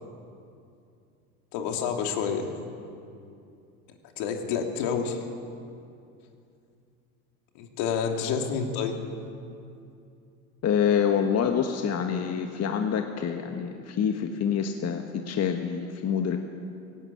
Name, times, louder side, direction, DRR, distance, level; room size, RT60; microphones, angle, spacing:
voice 1, 1.5-2.5 4.2-5.2 7.5-9.0, left 6 dB, 60° left, 3 dB, 3.1 m, -29 dB
voice 2, 10.6-16.4, left 7 dB, 35° left, 4 dB, 1.5 m, -26 dB
17.5 x 17.0 x 8.7 m, 2.5 s
hypercardioid pair, 85°, 45 cm